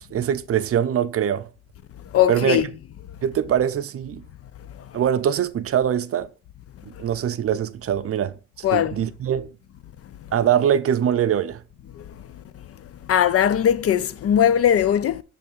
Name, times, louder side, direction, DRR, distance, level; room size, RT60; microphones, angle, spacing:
voice 1, 0.0-1.5 2.3-2.6 3.2-4.2 4.9-6.3 7.0-9.5 10.3-11.6, right 9 dB, 50° right, 0.6 m, -23 dB
voice 2, 2.1-2.6 8.6-8.9 13.1-15.2, left 10 dB, 50° left, 0.5 m, -19 dB
6.9 x 3.2 x 5.3 m
cardioid pair, 90°, 30 cm